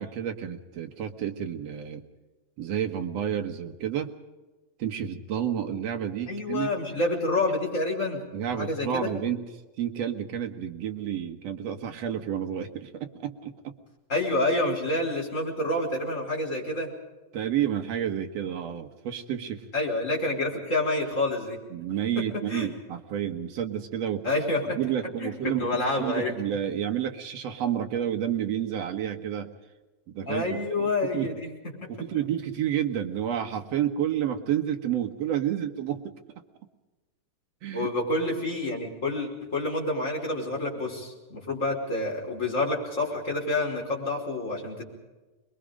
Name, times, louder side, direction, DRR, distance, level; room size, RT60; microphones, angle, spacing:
voice 1, 0.0-2.0 2.6-4.1 4.8-6.7 8.3-9.5 9.8-13.8 14.5-14.6 17.3-19.7 21.7-24.2 24.7-29.5 30.1-31.3 31.9-36.1 37.6-37.9, right 10 dB, 65° right, 5 dB, 2.4 m, -30 dB
voice 2, 6.3-8.2 8.6-9.1 14.1-16.9 19.7-21.6 22.3-22.7 24.2-24.8 25.2-26.3 30.3-31.5 31.8-31.9 37.7-44.8, left 2 dB, 25° left, -2 dB, 5.3 m, -28 dB
25.5 x 22.0 x 5.1 m, 1.2 s
omnidirectional pair, 3.4 m